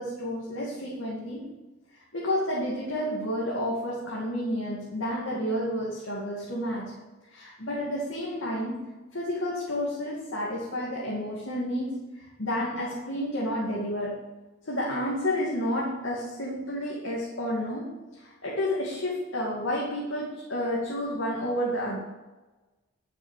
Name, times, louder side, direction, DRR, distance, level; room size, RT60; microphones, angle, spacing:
voice 1, 0.0-1.4 2.1-7.0 7.3-8.8 9.1-14.3 14.7-22.0, equal, 90° left, -4 dB, 2.5 m, -30 dB
11.5 x 6.6 x 6.7 m, 1.2 s
head